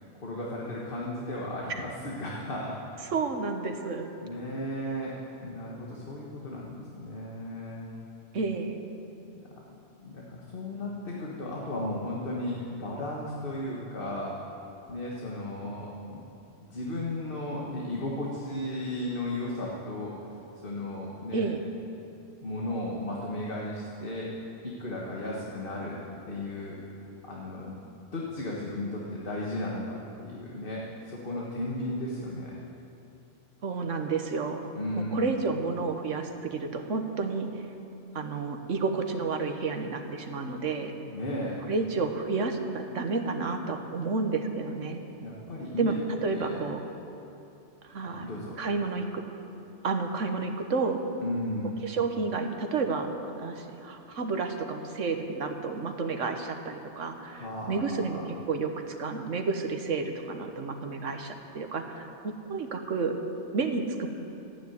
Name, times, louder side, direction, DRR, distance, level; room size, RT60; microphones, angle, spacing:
voice 1, 0.0-2.8 4.2-7.9 10.0-14.4 14.9-16.2 16.7-20.2 20.6-21.5 22.4-24.3 24.6-26.0 26.3-27.8 28.1-32.5 34.7-35.3 41.0-41.6 45.2-46.0 46.3-46.6 48.0-48.6 51.2-51.7 57.3-58.3, left 1 dB, 50° left, -3 dB, 1.8 m, -35 dB
voice 2, 3.0-4.1 8.3-8.8 21.3-21.6 33.6-34.7 35.1-37.5 38.1-40.9 41.7-45.0 45.8-46.8 47.8-48.3 48.6-49.2 49.8-51.0 51.8-63.2 63.5-64.1, right 4 dB, 90° right, 5 dB, 1.6 m, -31 dB
14.0 x 10.0 x 9.5 m, 2.8 s
omnidirectional pair, 1.2 m